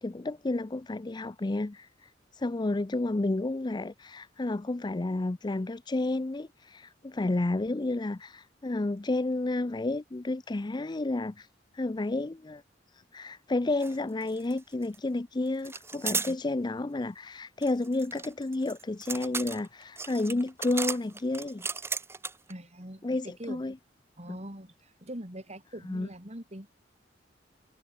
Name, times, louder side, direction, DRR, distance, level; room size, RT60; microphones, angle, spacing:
voice 1, 0.0-11.5 11.7-12.6 12.9-21.7 23.0-23.7 25.9-26.1, left 2 dB, 25° left, 0.5 m, -31 dB
sound 1, 13.8-14.0 14.2-15.0 15.7-16.3 17.6-22.5, right 4 dB, 15° right, 0.8 m, -35 dB
voice 2, 22.5-23.8 24.2-26.7, right 1 dB, 35° right, 6.6 m, -43 dB
head